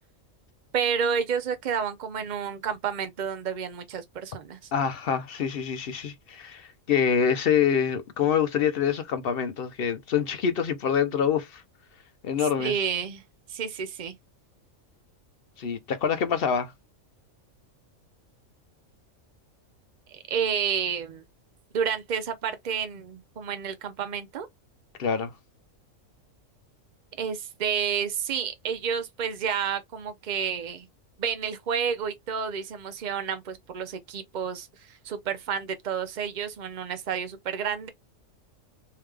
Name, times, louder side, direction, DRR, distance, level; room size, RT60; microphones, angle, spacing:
voice 1, 0.7-4.6 12.6-13.2 13.5-14.1 20.1-21.2 21.7-24.5 27.2-30.9 31.2-37.9, right 7 dB, 60° right, 0.4 m, -30 dB
voice 2, 4.7-11.6 12.2-12.7 15.6-16.7 25.0-25.3, left 7 dB, 60° left, 0.6 m, -26 dB
3.4 x 2.8 x 3.2 m
omnidirectional pair, 1.4 m